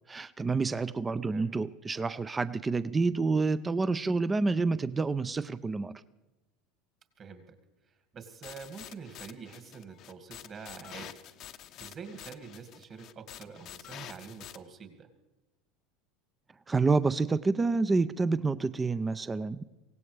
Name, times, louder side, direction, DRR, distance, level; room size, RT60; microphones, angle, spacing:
voice 1, 0.1-6.0 16.7-19.7, right 3 dB, 20° right, 15 dB, 0.5 m, -28 dB
voice 2, 1.1-1.5 7.2-7.6 7.9-11.1 11.8-15.1, right 5 dB, 40° right, 6 dB, 2.3 m, -46 dB
sound 1, 8.4-14.6, left 11 dB, 50° left, 0.8 m, -48 dB
23.5 x 17.5 x 3.4 m, 1.0 s
hypercardioid pair, 85°, 0 cm